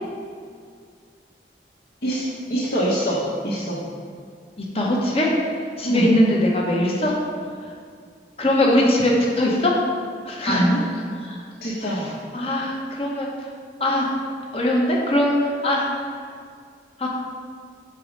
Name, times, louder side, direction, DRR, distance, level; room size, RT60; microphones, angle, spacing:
voice 1, 2.0-3.8 5.8-6.1 10.4-10.8 11.6-12.1, right 1 dB, 60° left, -10 dB, 1.3 m, -24 dB
voice 2, 4.6-7.2 7.6-7.7 8.4-9.8 10.2-10.6 11.2-11.4 11.8-13.5 13.8-14.0 14.5-15.9 17.0-17.1, left 1 dB, 35° left, -2 dB, 1.0 m, -21 dB
6.0 x 4.8 x 5.3 m, 2.1 s
head